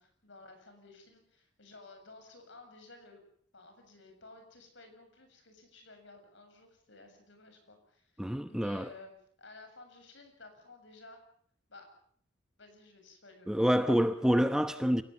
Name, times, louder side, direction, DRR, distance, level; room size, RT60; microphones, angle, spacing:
voice 1, 0.0-3.2 3.5-9.1 9.4-11.2 11.7-11.9 12.6-14.1, left 3 dB, 65° left, 7.4 m, -54 dB
voice 2, 8.2-8.9 13.5-15.0, equal, 5° right, 0.9 m, -27 dB
29.5 x 17.0 x 7.2 m
head